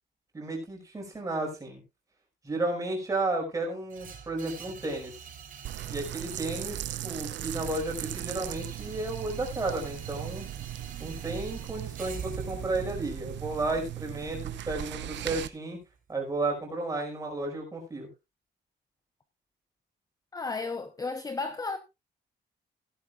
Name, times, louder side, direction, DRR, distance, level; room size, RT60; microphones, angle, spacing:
voice 1, 0.3-1.8 2.4-5.3 5.9-10.5 11.0-15.8 16.1-18.1, right 2 dB, 20° right, 5.3 m, -33 dB
sound 1, 3.9-15.9, right 7 dB, 50° right, 4.1 m, -46 dB
sound 2, 5.7-15.5, right 13 dB, 80° right, 0.9 m, -38 dB
voice 2, 20.3-21.8, left 3 dB, 20° left, 0.8 m, -33 dB
16.0 x 11.0 x 2.4 m
cardioid pair, 175°, 18 cm